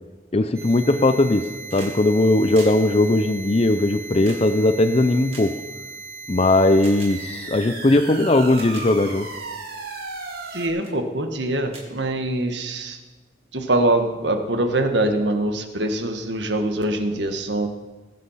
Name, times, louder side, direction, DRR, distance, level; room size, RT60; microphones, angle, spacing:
voice 1, 0.3-5.6 6.3-9.3, left 2 dB, 35° left, 8 dB, 0.6 m, -19 dB
sound 1, 0.5-10.7, right 3 dB, 60° right, 2.4 m, -37 dB
sound 2, 1.3-2.0 2.3-6.1 6.8-7.1 7.9-8.0 8.4-8.9 9.5-9.7 10.3-10.5 10.8-11.0 11.4-11.5 11.7-12.6 13.8-13.9, right 3 dB, 35° right, 2.8 m, -43 dB
voice 2, 10.5-13.0 13.5-17.7, right 1 dB, 85° right, 6 dB, 1.6 m, -23 dB
20.5 x 7.5 x 5.7 m, 1.2 s
head